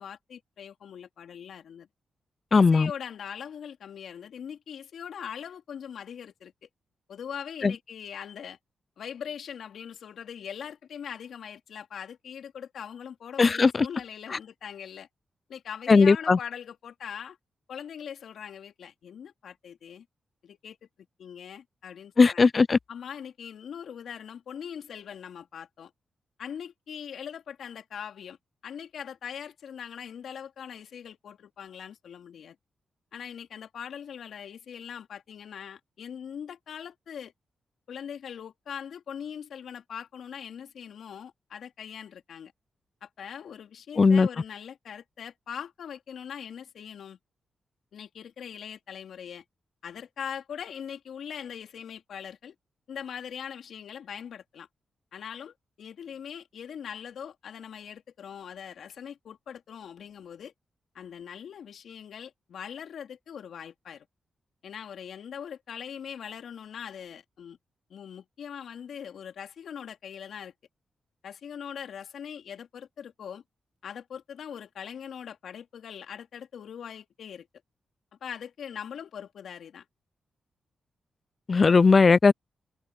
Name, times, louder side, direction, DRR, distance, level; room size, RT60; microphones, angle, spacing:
voice 1, 0.0-1.9 2.5-6.7 7.1-8.6 9.0-15.1 15.5-17.4 17.7-20.0 20.4-20.8 21.2-22.5 22.9-25.9 26.4-28.4 28.6-32.5 33.1-37.3 37.9-42.5 43.0-47.2 47.9-49.4 49.8-52.5 52.9-54.7 55.1-60.5 60.9-64.1 64.6-67.6 67.9-70.5 71.2-73.4 73.8-77.5 78.2-79.8, left 8 dB, 75° left, 3.3 m, -41 dB
voice 2, 2.5-2.9 7.6-7.7 13.4-13.9 15.9-16.4 22.2-22.8 44.0-44.3 81.5-82.3, left 4 dB, 50° left, 0.6 m, -18 dB
supercardioid pair, 40°, 0 cm